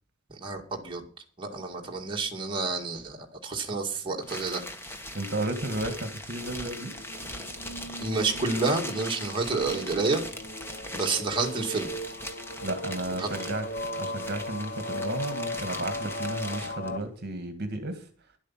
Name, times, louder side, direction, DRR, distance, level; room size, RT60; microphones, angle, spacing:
voice 1, 0.4-1.0 1.4-4.6 8.0-10.2 10.9-11.9 13.2-13.3, right 3 dB, 25° right, 0 dB, 2.1 m, -29 dB
sound 1, 4.2-16.9, left 1 dB, 10° left, 1.4 m, -40 dB
voice 2, 5.1-6.9 12.6-13.7 13.9-18.1, right 2 dB, 50° right, 8 dB, 1.7 m, -33 dB
sound 2, 6.7-17.0, left 1 dB, 45° left, 0.9 m, -38 dB
11.5 x 8.4 x 7.3 m, 0.43 s
head